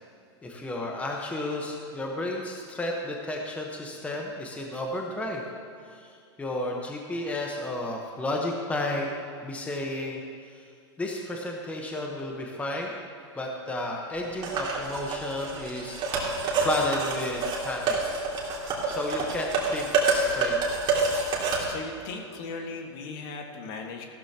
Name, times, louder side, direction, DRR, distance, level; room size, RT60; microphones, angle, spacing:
voice 1, 0.4-5.4 5.9-9.1 9.4-10.2 10.5-10.6 11.0-12.9 13.4-18.0 18.8-20.6, left 1 dB, 10° left, 0 dB, 1.1 m, -32 dB
sound 1, 14.4-21.6, right 3 dB, 35° right, 2.6 m, -28 dB
voice 2, 21.2-24.0, left 3 dB, 50° left, 2 dB, 1.7 m, -38 dB
15.0 x 12.5 x 2.9 m, 2.5 s
supercardioid pair, 135°, 15 cm